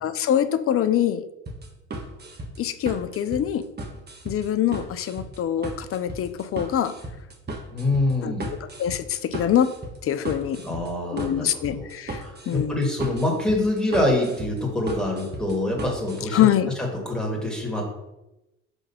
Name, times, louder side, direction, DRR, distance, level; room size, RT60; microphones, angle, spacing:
voice 1, 0.0-1.2 2.6-3.6 4.2-6.9 8.2-8.3 8.8-9.7 10.0-10.6 11.1-12.8 16.3-16.7, left 10 dB, 40° left, 12 dB, 0.6 m, -24 dB
sound 1, 1.5-16.2, right 2 dB, 30° right, 1.3 m, -36 dB
voice 2, 7.7-8.5 10.6-11.9 12.2-16.5 17.1-17.8, left 1 dB, ahead, -2 dB, 2.4 m, -25 dB
5.3 x 3.5 x 5.8 m, 0.97 s
hypercardioid pair, 70°, 34 cm